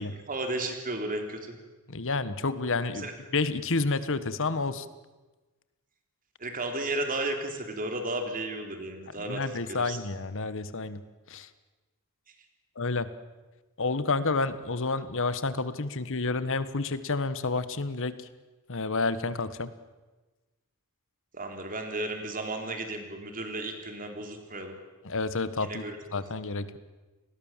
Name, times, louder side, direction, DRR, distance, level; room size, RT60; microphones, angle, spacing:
voice 1, 0.3-1.6 2.8-3.1 6.4-10.0 21.3-24.8 25.6-26.0, right 2 dB, 40° right, 4 dB, 3.5 m, -34 dB
voice 2, 1.9-4.9 9.2-11.0 11.3-11.5 12.8-13.1 13.8-18.3 18.7-19.7 25.0-25.8 26.1-26.7, left 3 dB, 60° left, 13 dB, 1.4 m, -30 dB
29.5 x 20.5 x 7.4 m, 1.2 s
head